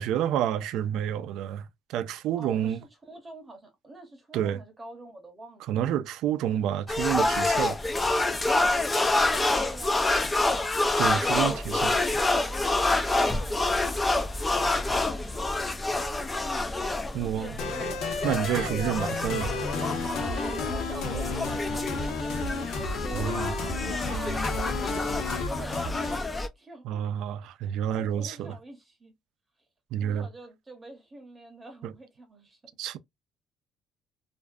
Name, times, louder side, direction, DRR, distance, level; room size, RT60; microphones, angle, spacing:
voice 1, 0.0-2.8 4.3-4.6 5.7-7.8 11.0-11.9 17.1-17.6 18.2-19.5 23.1-23.5 26.8-28.6 29.9-30.3 31.8-31.9 32.8-33.0, right 10 dB, 75° right, 0.3 m, -29 dB
voice 2, 2.4-5.7 8.7-10.6 11.2-13.9 14.5-16.8 18.5-19.0 20.2-27.0 28.0-29.1 30.0-32.6, right 2 dB, 15° right, 0.7 m, -44 dB
sound 1, 6.9-26.5, left 2 dB, 15° left, 0.3 m, -28 dB
sound 2, 17.6-26.2, left 3 dB, 65° left, 0.7 m, -32 dB
2.5 x 2.3 x 2.2 m
cardioid pair, 135°, 0 cm